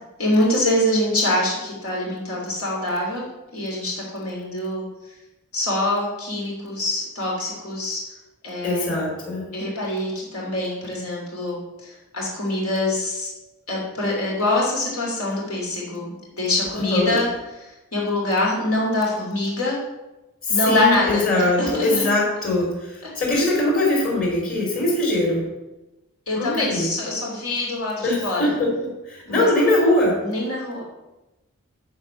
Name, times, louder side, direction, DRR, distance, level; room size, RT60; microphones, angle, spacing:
voice 1, 0.2-3.3 3.5-4.8 5.5-8.0 8.4-8.9 9.5-13.3 13.7-17.3 17.9-19.8 20.5-21.2 21.6-22.1 26.3-28.5 29.3-29.5 30.2-30.8, left 1 dB, 75° left, -3 dB, 3.1 m, -24 dB
voice 2, 8.6-9.5 16.7-17.2 20.4-25.5 26.3-26.9 28.0-30.3, left 2 dB, 40° left, -2 dB, 3.0 m, -22 dB
13.0 x 4.4 x 7.0 m, 1.0 s
head